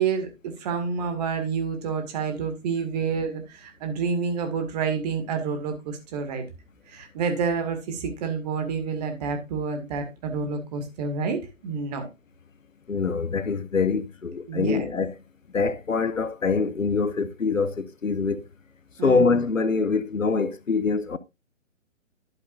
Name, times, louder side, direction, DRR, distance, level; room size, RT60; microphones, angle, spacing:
voice 1, 0.0-6.4 6.9-12.1 14.5-14.9 19.0-19.4, right 5 dB, 30° right, 2.1 m, -28 dB
voice 2, 12.9-15.1 15.5-18.5 19.0-21.2, left 4 dB, 80° left, 0.9 m, -24 dB
11.5 x 7.5 x 2.5 m
figure-of-eight pair, 130°, 39 cm